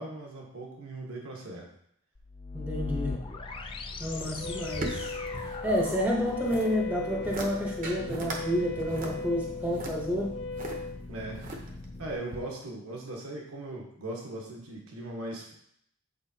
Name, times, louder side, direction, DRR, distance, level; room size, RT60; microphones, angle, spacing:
voice 1, 0.0-1.7 11.1-11.4 12.0-15.5, right 2 dB, 80° right, -1 dB, 1.2 m, -39 dB
sound 1, 2.2-12.1, left 3 dB, 25° left, 0.4 m, -40 dB
voice 2, 2.5-3.2 4.0-5.1 5.6-10.4, equal, 5° right, -2 dB, 0.8 m, -30 dB
sound 2, 4.1-6.0 6.3-6.7 7.1-7.5 7.8-8.4 8.8-10.7 11.3-11.9 12.3-12.4, right 2 dB, 40° right, 0.8 m, -39 dB
Wind instrument woodwind instrument, 4.4-11.0, left 3 dB, 65° left, 1.2 m, -38 dB
8.3 x 4.7 x 2.7 m, 0.72 s
head